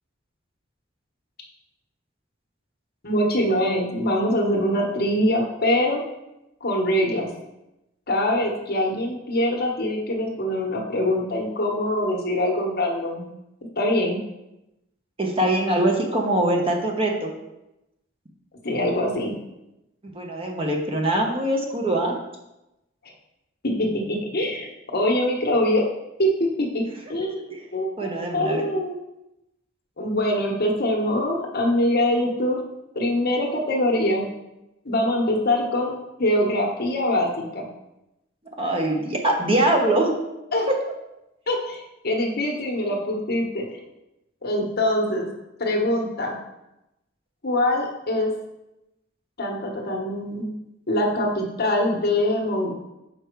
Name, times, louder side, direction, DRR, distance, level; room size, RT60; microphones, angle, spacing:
voice 1, 3.0-6.0 6.6-7.3 8.1-13.3 13.8-14.2 18.6-19.3 23.6-25.9 26.2-26.8 27.1-29.0 30.0-32.6 32.9-34.3 34.8-35.9 36.2-37.7 40.5-40.7 41.5-43.8 44.4-45.3 45.6-46.4 47.4-48.3 49.4-50.5 50.9-52.7, left 1 dB, 55° left, 0 dB, 1.2 m, -23 dB
voice 2, 15.2-17.3 20.1-22.1 27.2-27.3 28.0-28.6 38.6-40.1, right 1 dB, 30° right, 1 dB, 1.1 m, -23 dB
6.0 x 5.1 x 4.6 m, 0.92 s
head